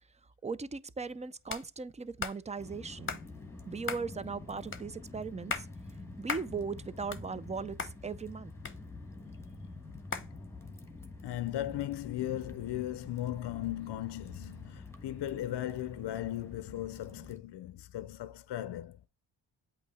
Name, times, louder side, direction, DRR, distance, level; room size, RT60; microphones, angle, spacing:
voice 1, 0.4-3.2 3.7-5.7 6.2-8.5, right 5 dB, 15° right, 0.3 m, -38 dB
sound 1, 1.5-1.7 2.2-2.4 3.1-3.3 3.9-4.1 4.7-4.8 5.3-5.7 6.3-6.5 6.9-7.5 7.8-7.9 8.7-9.2 10.1-10.3, left 5 dB, 25° left, 0.8 m, -37 dB
sound 2, 2.6-17.4, left 3 dB, 5° left, 1.2 m, -47 dB
voice 2, 11.2-19.0, left 13 dB, 60° left, 0.6 m, -37 dB
8.3 x 2.8 x 4.1 m
cardioid pair, 90°, 47 cm